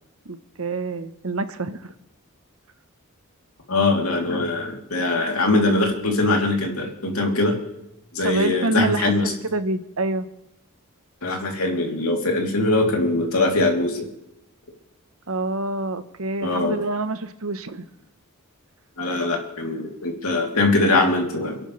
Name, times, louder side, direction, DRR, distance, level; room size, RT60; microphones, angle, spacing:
voice 1, 0.3-1.9 8.2-9.1 9.5-10.3 15.3-17.9, right 2 dB, 70° right, 10 dB, 1.0 m, -26 dB
voice 2, 3.7-7.6 8.1-9.3 11.2-14.1 16.4-16.8 19.0-21.6, left 2 dB, 75° left, 0 dB, 3.2 m, -22 dB
28.5 x 11.5 x 3.3 m, 0.85 s
head